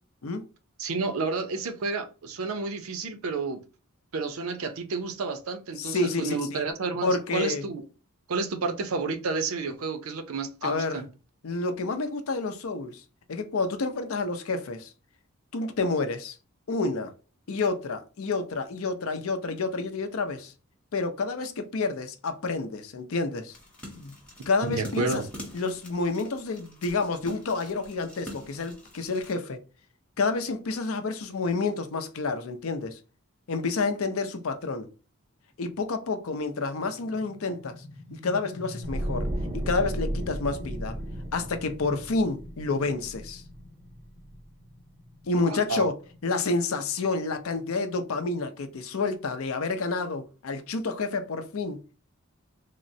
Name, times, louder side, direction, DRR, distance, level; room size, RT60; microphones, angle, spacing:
voice 1, 0.8-3.6 4.1-7.8 8.3-11.1 24.6-25.3 45.5-45.9, right 4 dB, 80° right, 0.5 m, -30 dB
voice 2, 5.8-6.6 7.0-7.6 10.6-11.0 11.4-13.0 13.3-14.9 15.5-16.4 16.7-17.1 17.5-20.5 20.9-23.6 24.0-24.2 24.5-25.2 25.5-29.6 30.2-33.0 33.5-34.9 35.6-37.8 38.1-39.3 39.5-41.0 41.3-43.4 45.2-45.9 46.2-51.9, left 3 dB, 80° left, 0.5 m, -29 dB
sound 1, 23.5-29.3, left 1 dB, 5° left, 0.7 m, -45 dB
sound 2, 36.8-48.2, left 2 dB, 50° left, 0.7 m, -44 dB
sound 3, 38.8-43.9 44.2-44.4, right 1 dB, 25° right, 0.3 m, -34 dB
3.6 x 2.0 x 2.6 m
head